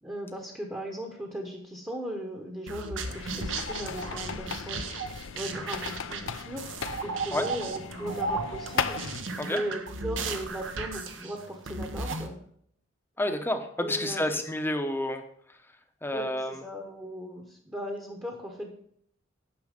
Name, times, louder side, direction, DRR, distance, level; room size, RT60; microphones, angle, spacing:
voice 1, 0.0-12.4 13.8-14.2 16.1-18.7, equal, 10° right, 1 dB, 1.0 m, -38 dB
sound 1, 2.7-12.3, right 3 dB, 65° right, 1.0 m, -35 dB
sound 2, 3.0-9.2, left 6 dB, 70° left, 0.6 m, -37 dB
voice 2, 13.2-15.2 16.0-16.6, left 1 dB, 10° left, 6 dB, 0.8 m, -29 dB
9.8 x 6.1 x 5.1 m, 0.66 s
head